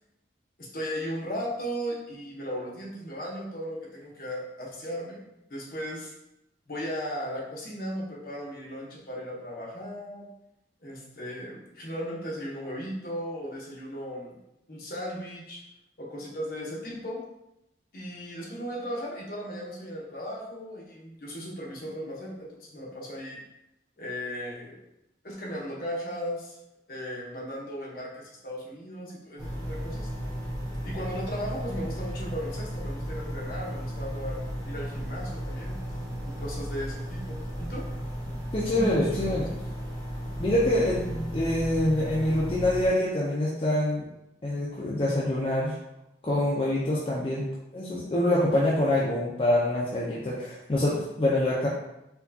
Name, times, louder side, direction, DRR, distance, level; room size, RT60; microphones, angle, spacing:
voice 1, 0.6-5.2 5.5-6.1 6.7-10.3 10.8-14.4 14.7-15.6 16.0-17.2 17.9-23.4 24.0-24.8 25.2-26.6 26.9-30.1 30.8-35.8 36.2-37.9 38.7-39.2, equal, 55° left, -4 dB, 0.9 m, -36 dB
sound 1, 29.4-42.9, equal, 25° right, 1.1 m, -35 dB
voice 2, 38.5-39.5 40.4-44.1 44.4-45.7 46.2-47.5 47.7-51.7, left 1 dB, 30° left, -6 dB, 0.5 m, -25 dB
4.4 x 2.3 x 2.7 m, 0.87 s
head